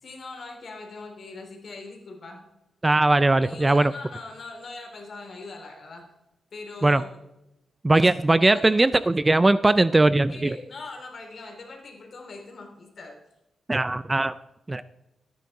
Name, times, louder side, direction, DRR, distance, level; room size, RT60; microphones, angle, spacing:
voice 1, 0.0-2.4 3.4-6.0 6.5-7.0 7.9-8.1 8.4-8.9 10.3-13.2, left 3 dB, 50° left, 1 dB, 3.0 m, -41 dB
voice 2, 2.8-3.9 6.8-7.0 7.8-10.6 13.7-14.3 14.7-14.8, right 2 dB, 20° right, 15 dB, 0.3 m, -20 dB
14.0 x 9.6 x 4.1 m, 0.93 s
wide cardioid pair, 120°, 0 cm